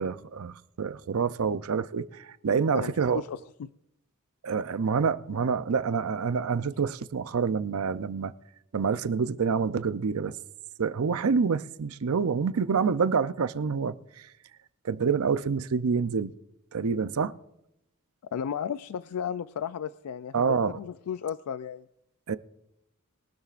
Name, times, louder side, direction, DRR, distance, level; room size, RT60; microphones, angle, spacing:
voice 1, 0.0-3.2 4.4-8.3 8.7-10.4 10.8-14.3 14.8-16.3 16.7-17.3 20.3-20.8 22.3-22.4, right 5 dB, 70° right, 0.5 m, -27 dB
voice 2, 2.7-3.7 18.3-21.9, left 8 dB, 80° left, 0.3 m, -34 dB
21.5 x 12.5 x 2.5 m
head